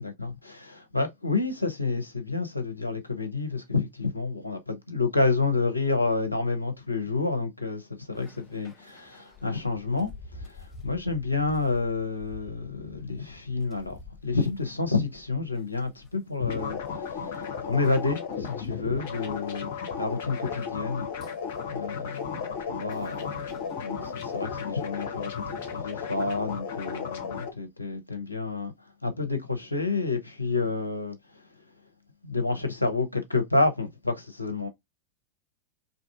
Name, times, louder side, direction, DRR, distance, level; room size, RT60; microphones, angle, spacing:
voice 1, 0.0-19.7 20.0-21.1 21.7-25.4 25.7-31.5 32.2-34.7, left 3 dB, 85° left, 0.5 m, -29 dB
sound 1, 8.1-25.8, left 3 dB, 15° left, 0.7 m, -51 dB
sound 2, 16.4-27.5, left 6 dB, 55° left, 0.8 m, -34 dB
2.6 x 2.6 x 2.3 m
figure-of-eight pair, 90°, 0 cm